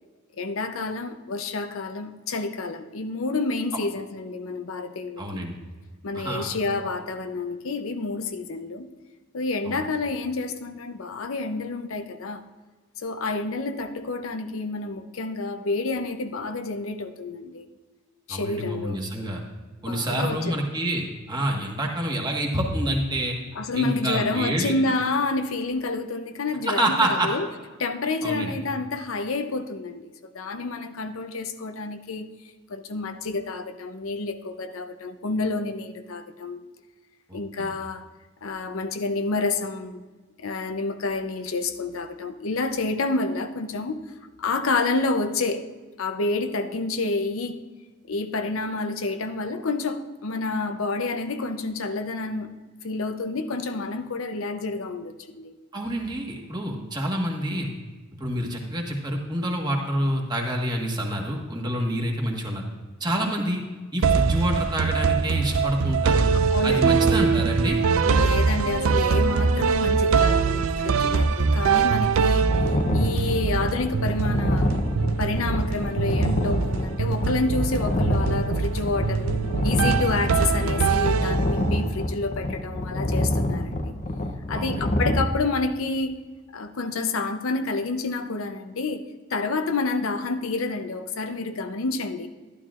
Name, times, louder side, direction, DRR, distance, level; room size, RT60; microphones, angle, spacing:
voice 1, 0.4-5.5 6.0-8.9 9.3-12.4 13.0-17.7 18.3-19.0 19.9-20.6 23.5-27.5 27.8-32.3 32.7-36.6 37.3-38.0 38.4-40.0 40.4-44.0 44.4-45.7 46.0-47.6 48.1-52.5 52.8-55.5 66.5-66.8 67.1-67.3 68.0-72.6 72.9-74.7 75.2-79.3 79.6-83.9 84.5-86.2 86.5-89.0 89.3-92.3, left 3 dB, 70° left, 8 dB, 0.7 m, -29 dB
voice 2, 5.2-5.6 6.1-6.5 9.6-9.8 18.3-19.4 19.8-23.4 23.7-24.8 26.6-27.3 28.2-28.6 37.3-37.7 55.7-57.7 58.2-62.6 63.0-63.6 63.9-66.3 66.6-67.8 84.5-84.9, right 1 dB, 20° right, 0 dB, 1.4 m, -27 dB
sound 1, 64.0-81.8, right 5 dB, 75° right, 0.5 m, -23 dB
sound 2, 72.5-85.2, left 1 dB, 35° left, 0.7 m, -27 dB
12.0 x 11.5 x 2.5 m, 1.3 s
head